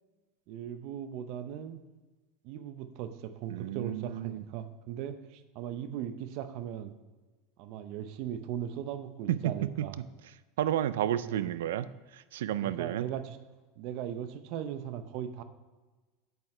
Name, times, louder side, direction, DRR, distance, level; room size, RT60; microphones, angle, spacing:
voice 1, 0.5-1.8 2.4-6.9 7.6-10.0 11.2-11.5 12.6-13.4 13.8-15.4, right 10 dB, 60° right, 10 dB, 0.8 m, -38 dB
voice 2, 3.5-4.4 9.3-9.9 10.6-13.1, right 11 dB, 80° right, 15 dB, 0.4 m, -31 dB
8.9 x 8.2 x 3.2 m, 1.3 s
hypercardioid pair, 105°, 0 cm